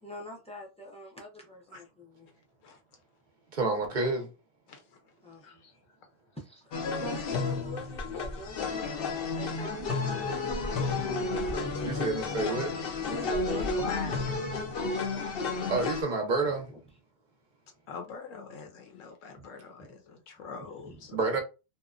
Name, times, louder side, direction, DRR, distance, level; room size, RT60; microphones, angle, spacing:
voice 1, 0.0-2.3 5.2-5.5 6.4-10.4 12.5-15.1 16.7-16.8 20.8-21.0, left 1 dB, 10° left, 0.4 m, -44 dB
voice 2, 3.5-4.3 9.0-9.1 11.8-12.7 15.7-16.7 21.1-21.4, right 3 dB, 50° right, 0.6 m, -29 dB
voice 3, 4.7-5.0 5.4-5.7 9.6-9.7 10.8-12.1 13.5-14.1 17.9-21.4, left 5 dB, 80° left, 1.0 m, -42 dB
sound 1, 6.7-16.0, left 3 dB, 60° left, 0.7 m, -32 dB
2.8 x 2.1 x 2.4 m
omnidirectional pair, 1.3 m